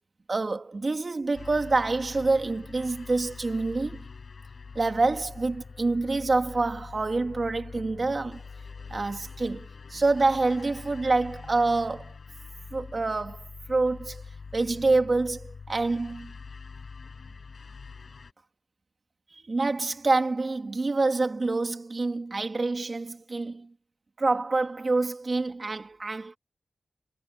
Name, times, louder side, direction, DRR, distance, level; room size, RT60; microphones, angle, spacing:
voice 1, 0.3-4.1 4.7-8.4 8.9-12.1 12.7-14.2 14.5-16.3 19.5-23.7 24.2-26.4, right 3 dB, 40° right, 2.6 m, -27 dB
sound 1, 1.3-18.3, left 5 dB, 60° left, 5.6 m, -44 dB
wide cardioid pair, 135°, 0 cm